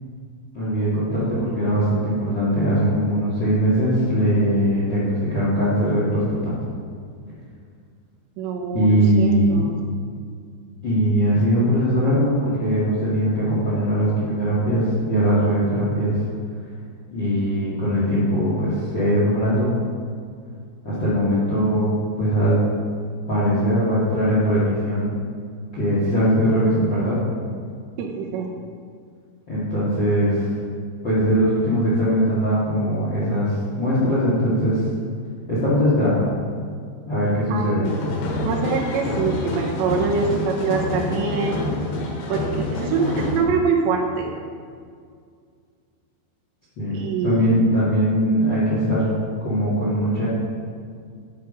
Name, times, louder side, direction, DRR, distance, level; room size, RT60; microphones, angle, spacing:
voice 1, 0.5-6.5 8.7-9.7 10.8-16.1 17.1-19.8 20.8-22.6 23.3-25.1 25.7-27.2 29.5-30.4 31.0-33.5 33.8-34.8 35.5-36.3 37.0-37.8 46.8-49.0 49.4-50.3, equal, 50° left, -8 dB, 1.3 m, -20 dB
voice 2, 8.4-9.7 28.0-28.5 37.5-37.8 38.4-41.6 42.3-44.3 46.9-47.8, right 5 dB, 80° right, 1 dB, 3.0 m, -24 dB
sound 1, 37.8-43.4, left 2 dB, 70° left, 3.1 m, -27 dB
10.5 x 5.6 x 5.1 m, 2.1 s
omnidirectional pair, 5.3 m